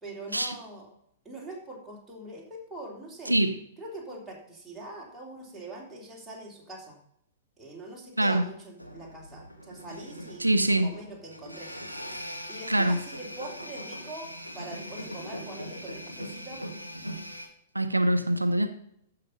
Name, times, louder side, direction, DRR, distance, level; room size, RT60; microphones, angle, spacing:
voice 1, 0.0-0.9 1.2-3.4 3.8-7.0 7.6-10.5 10.8-11.8 12.5-16.6, right 2 dB, 5° right, 3.3 m, -43 dB
voice 2, 3.3-3.6 8.2-8.4 10.4-10.9 12.7-13.0 17.7-18.7, right 1 dB, 85° right, 0.7 m, -24 dB
sound 1, 8.8-17.5, equal, 90° left, 1.5 m, -41 dB
14.0 x 5.9 x 5.4 m
figure-of-eight pair, 105°, 0 cm